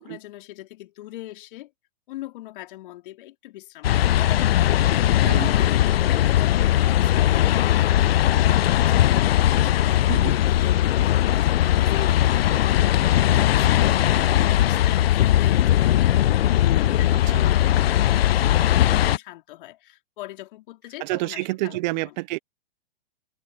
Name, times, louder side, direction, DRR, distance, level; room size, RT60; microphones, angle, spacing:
voice 1, 0.0-1.7 2.1-4.2 4.6-16.1 16.6-22.1, left 16 dB, 55° left, 4.7 m, -41 dB
sound 1, 3.8-19.2, left 12 dB, 70° left, 0.5 m, -19 dB
voice 2, 21.0-22.4, right 21 dB, 45° right, 1.5 m, -28 dB
hypercardioid pair, 110°, 31 cm